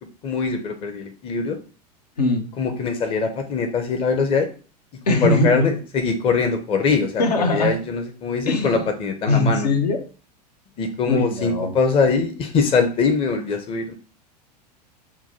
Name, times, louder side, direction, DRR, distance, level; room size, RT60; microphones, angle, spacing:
voice 1, 0.2-1.6 2.6-4.5 5.1-9.7 10.8-13.9, left 4 dB, 25° left, 6 dB, 0.6 m, -22 dB
voice 2, 5.1-5.7 7.2-7.7 8.5-8.8 9.3-10.0 11.1-11.7, left 2 dB, 70° left, 5 dB, 0.8 m, -20 dB
5.7 x 2.2 x 2.8 m, 0.36 s
figure-of-eight pair, 85°, 21 cm